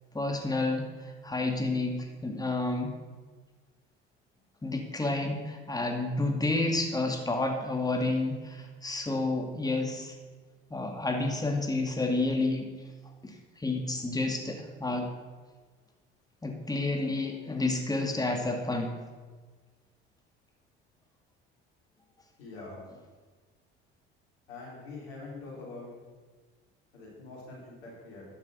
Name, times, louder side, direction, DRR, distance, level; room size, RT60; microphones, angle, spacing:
voice 1, 0.1-2.9 4.6-10.1 10.7-12.7 13.2-15.1 16.4-19.0, left 2 dB, 10° left, 3 dB, 2.3 m, -30 dB
voice 2, 22.4-22.9 24.5-25.9 26.9-28.3, left 3 dB, 85° left, -3 dB, 4.4 m, -44 dB
12.5 x 7.3 x 6.8 m, 1.4 s
hypercardioid pair, 65°, 30 cm